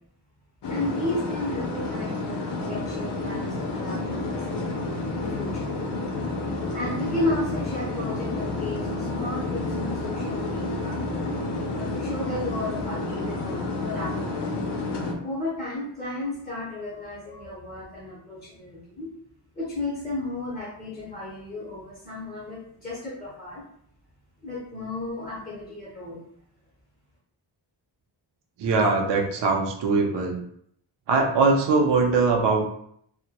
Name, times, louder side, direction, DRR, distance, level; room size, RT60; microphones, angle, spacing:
sound 1, 0.6-15.1, left 2 dB, 60° left, 0.5 m, -30 dB
voice 1, 0.7-5.8 6.7-11.0 11.7-14.3 15.2-19.1 19.6-23.6 24.4-26.2, left 2 dB, 20° left, -8 dB, 0.6 m, -33 dB
voice 2, 28.6-30.4 31.1-32.7, right 4 dB, 65° right, 2 dB, 0.5 m, -21 dB
2.1 x 2.0 x 2.8 m, 0.68 s
wide cardioid pair, 160°, 46 cm